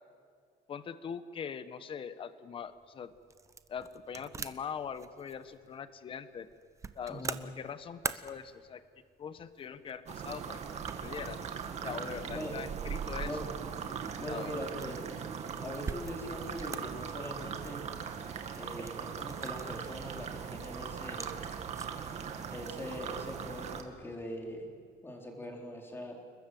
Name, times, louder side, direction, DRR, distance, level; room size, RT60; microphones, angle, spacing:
voice 1, 0.7-3.1 3.7-6.5 6.9-8.8 9.2-10.6 11.0-11.4 11.8-13.4 14.3-14.6, left 7 dB, 30° left, 13 dB, 1.1 m, -42 dB
sound 1, 2.5-22.1, right 4 dB, 20° right, 0.8 m, -47 dB
sound 2, 10.1-23.8, right 7 dB, 40° right, 2.2 m, -40 dB
voice 2, 14.2-15.0 15.6-17.8 18.5-21.3 22.5-24.7 25.0-26.2, equal, 15° left, 1 dB, 3.8 m, -41 dB
29.0 x 21.0 x 7.7 m, 2.2 s
cardioid pair, 155°, 17 cm